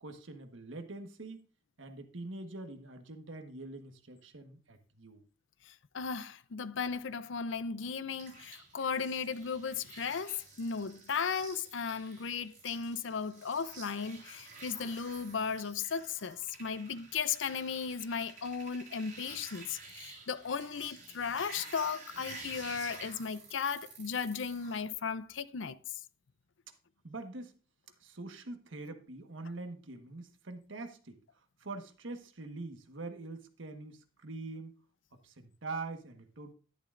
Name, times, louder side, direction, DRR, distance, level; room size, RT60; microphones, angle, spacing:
voice 1, 0.0-1.4 1.8-5.2 27.0-27.5 28.0-31.2 31.6-34.7 35.2-36.5, right 3 dB, 90° right, 1.4 m, -44 dB
voice 2, 5.7-25.8, left 6 dB, 80° left, 0.6 m, -36 dB
sound 1, 8.2-24.8, right 4 dB, 45° right, 5.9 m, -51 dB
11.5 x 10.5 x 2.5 m
head